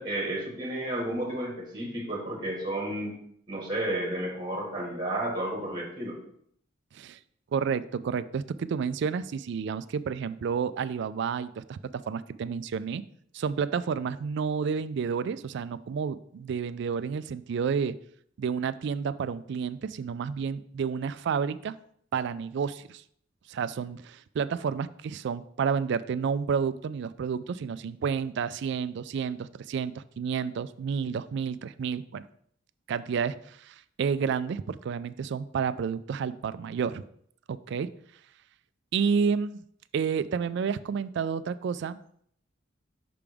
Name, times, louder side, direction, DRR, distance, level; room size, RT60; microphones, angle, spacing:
voice 1, 0.0-3.2 3.5-6.2, right 1 dB, 20° right, -1 dB, 1.6 m, -32 dB
voice 2, 7.5-13.0 13.3-18.0 18.4-21.8 22.1-23.0 23.5-32.2 32.9-37.0 37.5-37.9 38.9-39.6 39.9-42.0, right 6 dB, 60° right, 15 dB, 0.3 m, -30 dB
5.9 x 3.5 x 5.1 m, 0.65 s
head